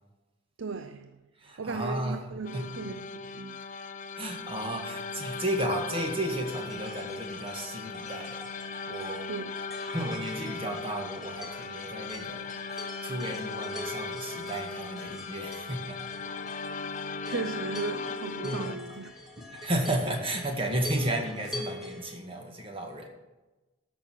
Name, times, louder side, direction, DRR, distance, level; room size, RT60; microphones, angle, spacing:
voice 1, 0.6-1.2 1.6-3.6 9.3-9.6 17.0-19.1, right 4 dB, 80° right, 0.6 m, -36 dB
voice 2, 1.4-2.8 3.6-3.8 4.2-8.5 8.9-9.2 9.9-16.0 18.4-18.8 19.4-23.1, right 1 dB, 25° right, 1.8 m, -33 dB
sound 1, 2.4-18.8, left 4 dB, 40° left, 0.5 m, -38 dB
sound 2, 6.4-22.2, left 1 dB, ahead, 1.8 m, -45 dB
13.5 x 6.4 x 7.6 m
head